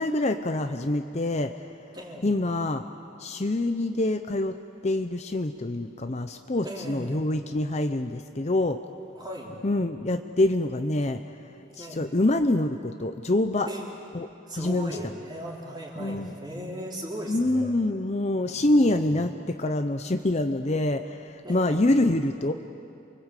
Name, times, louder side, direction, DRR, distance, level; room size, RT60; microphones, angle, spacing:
voice 1, 0.0-1.5 2.2-2.8 3.2-4.6 4.8-8.8 9.6-11.2 11.8-13.7 14.1-14.3 14.5-15.0 16.0-16.3 17.3-22.5, left 1 dB, 35° left, 7 dB, 0.7 m, -25 dB
voice 2, 1.9-2.3 6.6-7.3 9.1-9.5 11.8-12.0 13.7-13.8 14.5-17.7 18.4-19.1 21.4-22.1, equal, 20° right, -3 dB, 4.4 m, -38 dB
28.5 x 23.5 x 8.3 m, 2.5 s
head